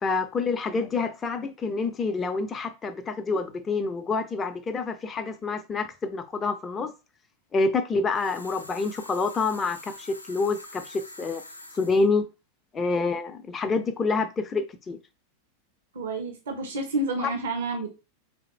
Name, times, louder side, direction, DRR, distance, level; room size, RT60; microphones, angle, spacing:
voice 1, 0.0-6.9 7.5-11.4 11.7-12.3 12.7-15.0, left 4 dB, 20° left, 0.5 m, -27 dB
sound 1, 8.1-12.1, left 1 dB, 85° left, 0.6 m, -45 dB
voice 2, 15.9-17.9, right 2 dB, 60° right, 1.0 m, -29 dB
3.7 x 3.4 x 3.3 m
figure-of-eight pair, 90°, 0 cm